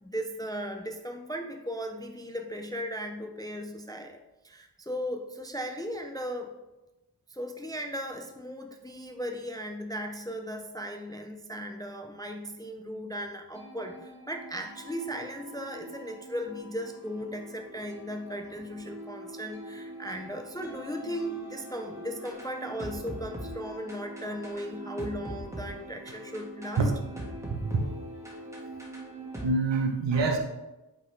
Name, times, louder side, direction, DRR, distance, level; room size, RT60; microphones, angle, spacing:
voice 1, 0.0-4.2 4.4-6.5 7.3-26.8, equal, 10° left, 4 dB, 0.3 m, -37 dB
sound 1, 13.5-29.4, right 1 dB, 5° right, 1.2 m, -43 dB
voice 2, 27.5-27.9 29.4-30.4, right 3 dB, 75° right, 2 dB, 1.1 m, -26 dB
8.3 x 3.8 x 3.3 m, 1.0 s
wide cardioid pair, 155°, 44 cm